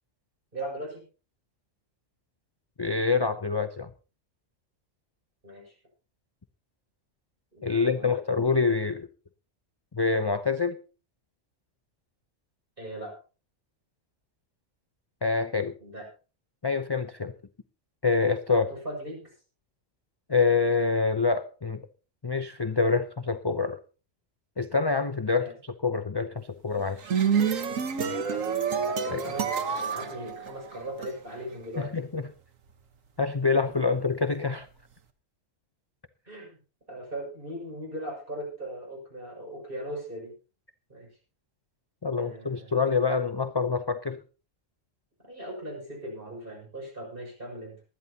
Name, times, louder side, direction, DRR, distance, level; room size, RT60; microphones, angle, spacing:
voice 1, 0.5-1.0 5.4-5.7 7.5-8.2 12.8-13.2 15.8-16.1 18.5-19.3 25.4-25.5 28.1-28.6 28.8-31.9 36.3-36.6 36.9-40.3 40.9-41.1 42.2-42.8 45.2-47.8, right 1 dB, 40° right, -1 dB, 6.8 m, -39 dB
voice 2, 2.8-3.9 7.6-9.1 9.9-10.8 15.2-15.7 16.6-17.3 18.0-18.7 20.3-21.8 22.2-23.8 24.6-27.0 29.1-29.2 31.8-32.2 33.2-34.7 42.0-44.2, left 4 dB, 30° left, 9 dB, 0.5 m, -26 dB
sound 1, 26.8-31.1, right 6 dB, 85° right, 1.6 m, -28 dB
19.5 x 12.5 x 2.8 m, 0.35 s
omnidirectional pair, 1.3 m